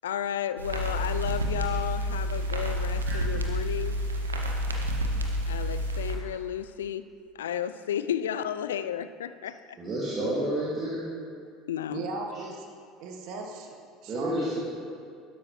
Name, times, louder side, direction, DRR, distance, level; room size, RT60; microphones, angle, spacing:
voice 1, 0.0-3.9 5.5-7.0 7.3-9.8 11.7-12.0, left 10 dB, 80° left, 12 dB, 0.4 m, -33 dB
sound 1, 0.6-6.1, equal, 90° right, 1.0 m, -29 dB
voice 2, 9.8-11.0 14.1-14.6, right 1 dB, 35° right, -6 dB, 2.4 m, -30 dB
voice 3, 11.9-12.7 13.0-13.8 14.0-14.5, right 3 dB, 60° right, 2 dB, 1.4 m, -37 dB
12.0 x 11.0 x 3.2 m, 2.2 s
figure-of-eight pair, 70°, 0 cm